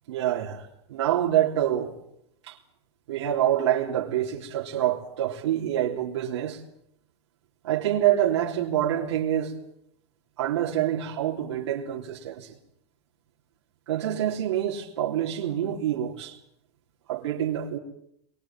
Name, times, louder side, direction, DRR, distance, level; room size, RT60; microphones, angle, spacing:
voice 1, 0.1-1.9 2.5-2.6 3.1-6.6 7.6-9.5 10.4-12.6 13.9-16.4 17.1-17.8, right 11 dB, 80° right, 3.7 m, -26 dB
27.5 x 23.0 x 7.6 m
supercardioid pair, 150°, 14 cm